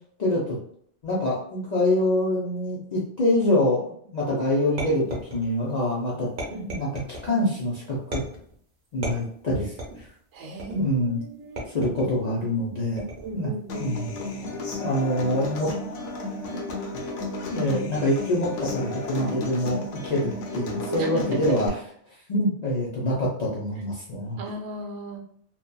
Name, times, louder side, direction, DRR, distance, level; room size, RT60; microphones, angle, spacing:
voice 1, 0.2-0.6 1.0-3.8 4.1-8.2 8.9-10.1 10.7-11.2 11.7-13.0 13.3-13.5 13.8-14.2 14.8-15.7 17.5-21.7 22.3-24.4, left 1 dB, 50° left, -5 dB, 0.5 m, -25 dB
sound 1, 4.8-5.7 6.4-7.3 8.1-8.6 9.0-10.1 10.6-11.0 11.6-12.2 13.0-13.4, right 1 dB, 50° right, 0.8 m, -35 dB
voice 2, 10.3-11.7 13.2-14.0 20.8-21.6 24.4-25.2, right 3 dB, 80° right, 1 dB, 0.9 m, -35 dB
Human voice / Acoustic guitar, 13.7-21.7, left 2 dB, 80° left, 0.9 m, -33 dB
2.7 x 2.1 x 2.3 m, 0.63 s
omnidirectional pair, 1.2 m